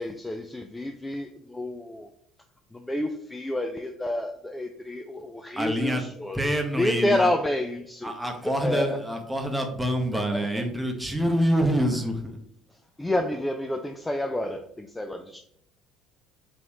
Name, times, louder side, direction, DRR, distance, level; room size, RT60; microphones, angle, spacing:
voice 1, 0.0-2.1 2.7-6.5 6.8-8.1 8.4-9.0 10.1-10.6 13.0-15.4, left 1 dB, 10° left, 5 dB, 0.3 m, -29 dB
voice 2, 5.6-6.0 6.3-7.3 8.0-12.4, equal, 10° right, 4 dB, 0.8 m, -26 dB
3.8 x 3.0 x 3.0 m, 0.67 s
hypercardioid pair, 60°, 0 cm